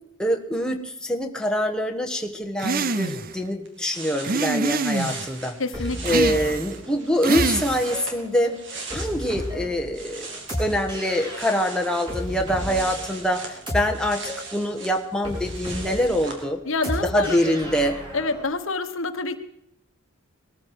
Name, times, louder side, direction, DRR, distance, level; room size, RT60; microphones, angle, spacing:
voice 1, 0.2-5.6 6.0-8.6 8.9-16.6 17.0-18.0, equal, 5° left, 2 dB, 1.4 m, -25 dB
sound 1, 2.6-3.3 4.2-5.3 6.0-6.8 7.2-8.0, right 4 dB, 45° right, 0.8 m, -26 dB
sound 2, 3.7-9.5 9.8-16.4, right 3 dB, 60° right, 3.2 m, -40 dB
voice 2, 5.6-6.3 16.6-17.4 18.1-19.4, left 3 dB, 70° left, 9 dB, 1.3 m, -27 dB
sound 3, 5.7-18.4, equal, 25° right, 7.7 m, -34 dB
21.0 x 14.5 x 4.8 m, 0.79 s
head